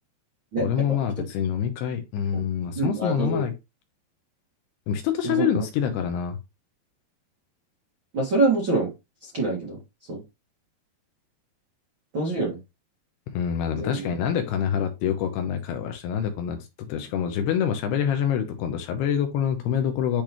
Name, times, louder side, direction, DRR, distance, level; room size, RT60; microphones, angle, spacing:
voice 1, 0.6-3.5 4.9-6.4 13.3-20.2, left 8 dB, 75° left, 2.6 m, -26 dB
voice 2, 2.7-3.4 5.2-5.5 8.1-8.9 9.2-9.8 10.1-10.2 12.1-12.6 13.7-14.1, right 2 dB, 75° right, 1.1 m, -25 dB
10.5 x 3.5 x 3.0 m
omnidirectional pair, 5.3 m